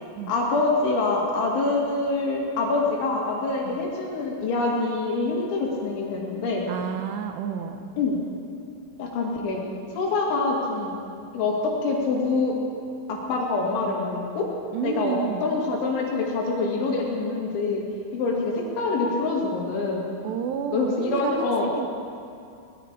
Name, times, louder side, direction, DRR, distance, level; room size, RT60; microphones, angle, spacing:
voice 1, 0.3-6.7 8.0-8.3 9.0-9.6 9.9-10.9 11.3-12.6 13.1-14.5 14.8-15.1 15.4-17.8 18.1-20.0 20.7-21.9, left 3 dB, 85° left, -2 dB, 4.6 m, -25 dB
voice 2, 6.7-7.9 14.7-15.5 20.2-21.3 21.8-21.9, right 8 dB, 80° right, 6 dB, 2.7 m, -30 dB
19.5 x 12.0 x 5.1 m, 2.5 s
omnidirectional pair, 5.3 m